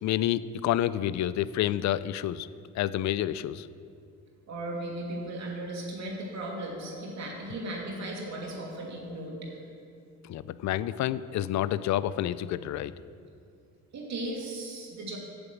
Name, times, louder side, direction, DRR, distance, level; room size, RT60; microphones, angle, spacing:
voice 1, 0.0-2.5 2.8-3.7 10.2-12.9, left 12 dB, 65° left, 16 dB, 0.5 m, -29 dB
voice 2, 4.5-9.5 13.9-15.2, right 1 dB, 65° right, -1 dB, 2.7 m, -36 dB
8.8 x 7.0 x 8.5 m, 2.4 s
cardioid pair, 90°, 30 cm